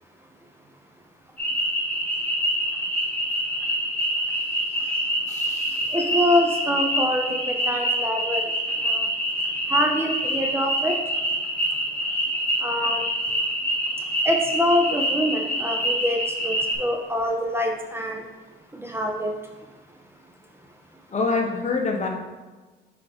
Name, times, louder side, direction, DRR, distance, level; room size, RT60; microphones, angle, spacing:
sound 1, 1.4-16.7, equal, 5° left, 1.4 m, -26 dB
voice 1, 5.3-5.9 21.1-22.1, left 4 dB, 35° left, 1 dB, 1.0 m, -26 dB
voice 2, 5.9-8.4 8.8-9.1 9.7-11.0 12.6-13.1 14.2-18.2 18.8-19.3, left 1 dB, 10° right, 1 dB, 0.6 m, -25 dB
7.4 x 3.6 x 3.6 m, 1.2 s
cardioid pair, 90°, 20 cm